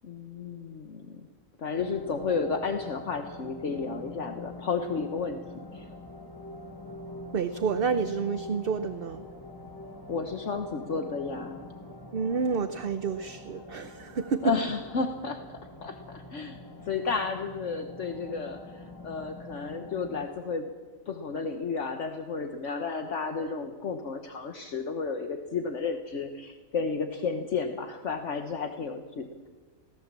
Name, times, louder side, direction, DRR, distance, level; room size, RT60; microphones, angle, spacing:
voice 1, 0.0-1.3 1.6-5.4 5.7-5.9 10.1-11.7 14.4-15.4 15.8-20.7 21.1-29.5, left 5 dB, 60° left, 6 dB, 1.5 m, -32 dB
sound 1, 1.7-20.3, left 2 dB, 15° left, 1.6 m, -45 dB
voice 2, 7.3-9.3 12.1-14.5, right 5 dB, 50° right, 10 dB, 0.9 m, -29 dB
23.5 x 17.5 x 7.5 m, 1.4 s
omnidirectional pair, 1.4 m